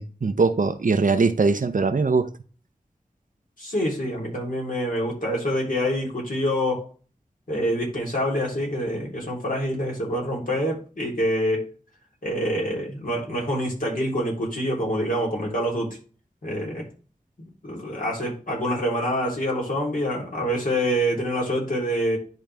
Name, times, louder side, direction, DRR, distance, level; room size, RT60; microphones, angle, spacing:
voice 1, 0.0-2.3, right 4 dB, 65° right, 0.8 m, -21 dB
voice 2, 3.6-6.9 7.5-11.7 12.2-16.0 16.4-16.9 17.6-22.2, equal, 70° left, 3.5 m, -26 dB
10.5 x 3.8 x 3.5 m
wide cardioid pair, 45°, 15 cm